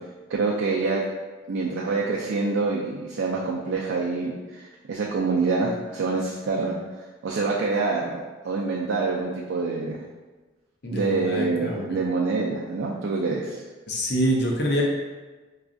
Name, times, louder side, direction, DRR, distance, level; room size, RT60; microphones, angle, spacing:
voice 1, 0.3-1.0 1.5-6.8 7.2-10.0 10.9-13.6, right 3 dB, 75° right, -3 dB, 0.4 m, -26 dB
voice 2, 10.8-12.0 13.9-14.8, equal, 55° left, -1 dB, 0.6 m, -26 dB
4.9 x 2.3 x 2.5 m, 1.3 s
head